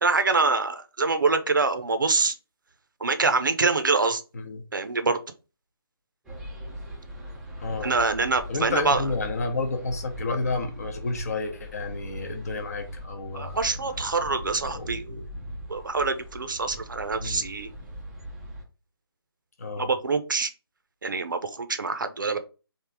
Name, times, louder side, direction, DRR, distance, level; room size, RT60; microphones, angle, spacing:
voice 1, 0.0-2.3 3.0-4.2 4.7-5.2 7.8-9.0 13.3-15.2 15.7-17.7 19.8-20.5 21.0-22.4, right 4 dB, 55° right, 0.6 m, -25 dB
sound 1, 6.2-18.6, equal, 5° right, 0.5 m, -40 dB
voice 2, 7.6-8.0 8.5-13.6 14.7-15.2 17.2-17.5 19.6-19.9, left 3 dB, 40° left, 0.8 m, -31 dB
3.7 x 2.7 x 4.6 m
figure-of-eight pair, 150°, 13 cm